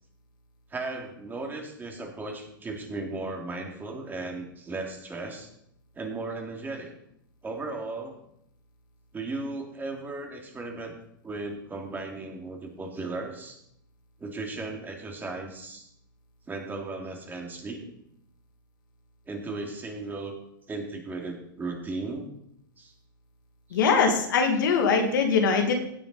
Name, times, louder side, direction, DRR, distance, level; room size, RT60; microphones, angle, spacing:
voice 1, 0.7-5.5 6.0-6.9 7.4-8.1 9.1-11.0 11.2-13.6 14.2-15.9 16.5-17.9 19.3-20.3 20.7-22.3 22.8-22.9 23.7-23.8, right 3 dB, 15° right, 2 dB, 2.5 m, -36 dB
voice 2, 23.7-25.7, left 5 dB, 65° left, 3 dB, 2.2 m, -22 dB
16.5 x 6.9 x 4.1 m, 0.74 s
figure-of-eight pair, 95°, 11 cm